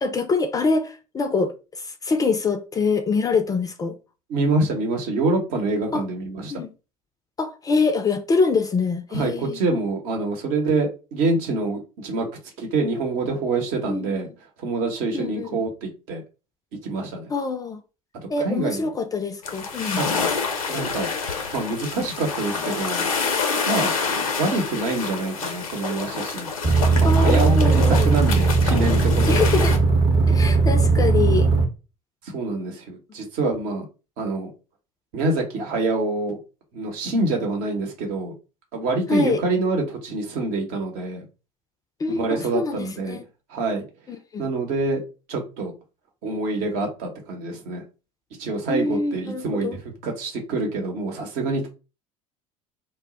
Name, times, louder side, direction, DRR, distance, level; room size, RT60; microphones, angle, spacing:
voice 1, 0.0-3.9 5.9-6.0 6.5-6.7 7.4-9.6 13.9-14.3 15.1-15.6 17.3-17.8 18.3-20.0 27.0-28.1 29.3-29.7 30.3-31.5 39.1-39.4 42.0-43.2 44.1-44.5 48.7-49.8, left 4 dB, 20° left, 0.4 m, -24 dB
voice 2, 4.3-6.6 9.1-12.3 12.6-14.3 14.6-16.2 16.8-17.3 18.4-18.8 20.0-20.1 20.7-21.1 21.5-23.0 23.7-23.9 24.4-26.5 26.9-29.5 32.3-33.9 34.2-34.5 35.1-36.4 36.7-38.3 38.7-41.3 42.1-43.2 43.5-43.8 44.4-45.0 45.3-45.7 46.2-47.8 48.4-49.7 50.0-51.7, right 3 dB, 55° right, 0.8 m, -26 dB
sound 1, 19.4-29.8, left 5 dB, 80° left, 0.5 m, -27 dB
sound 2, 26.6-31.6, right 4 dB, 30° right, 0.7 m, -18 dB
2.0 x 2.0 x 3.7 m
figure-of-eight pair, 70°, 18 cm